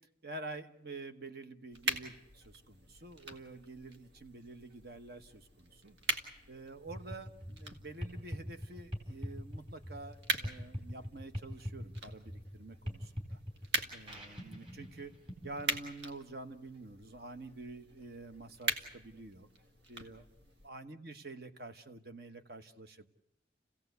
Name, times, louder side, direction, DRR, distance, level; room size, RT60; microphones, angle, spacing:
voice 1, 0.2-6.0 6.5-13.4 13.9-15.1 15.4-19.5 19.9-23.1, right 2 dB, 60° right, 9 dB, 1.2 m, -48 dB
sound 1, 1.7-20.7, right 2 dB, 75° right, 2.0 m, -43 dB
sound 2, 6.9-15.8, equal, 30° right, 4.3 m, -43 dB
29.0 x 16.5 x 8.1 m, 0.90 s
head